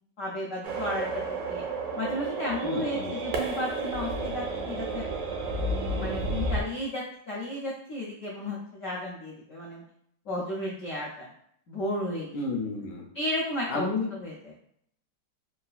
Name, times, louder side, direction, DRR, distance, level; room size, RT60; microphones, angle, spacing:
voice 1, 0.2-1.6 2.0-5.1 5.9-9.8 10.3-11.3 11.7-12.4 13.1-14.3, left 1 dB, 80° left, -5 dB, 0.7 m, -33 dB
sound 1, 0.6-6.6, right 2 dB, 80° right, 1.2 m, -31 dB
voice 2, 2.6-3.3 12.3-13.1 13.7-14.1, left 3 dB, 60° left, -1 dB, 1.0 m, -31 dB
3.8 x 2.3 x 2.3 m, 0.71 s
omnidirectional pair, 2.0 m